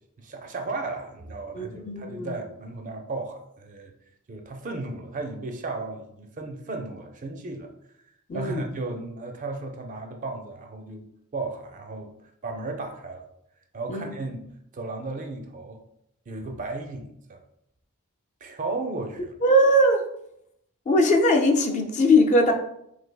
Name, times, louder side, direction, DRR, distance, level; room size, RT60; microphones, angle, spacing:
voice 1, 0.2-3.9 4.3-7.7 8.3-11.1 11.3-12.1 12.4-13.2 13.7-14.5 14.7-15.8 16.3-17.4 18.4-19.3, right 3 dB, 35° right, 4 dB, 0.4 m, -34 dB
voice 2, 1.5-2.4 8.3-8.6 13.9-14.1 19.4-20.0 20.9-22.5, left 1 dB, 35° left, 4 dB, 0.3 m, -20 dB
3.2 x 3.2 x 2.2 m, 0.76 s
head